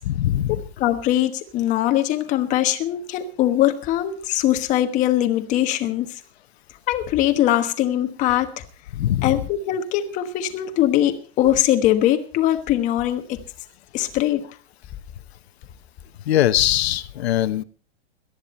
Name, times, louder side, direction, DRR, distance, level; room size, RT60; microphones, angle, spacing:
voice 1, 0.0-0.6 8.9-9.4 16.2-17.6, left 12 dB, 80° left, 13 dB, 1.2 m, -21 dB
voice 2, 0.8-6.2 6.9-8.5 9.2-13.4 13.9-14.4, left 12 dB, 25° left, 8 dB, 1.2 m, -21 dB
18.0 x 13.0 x 4.3 m, 0.41 s
supercardioid pair, 170°, 31 cm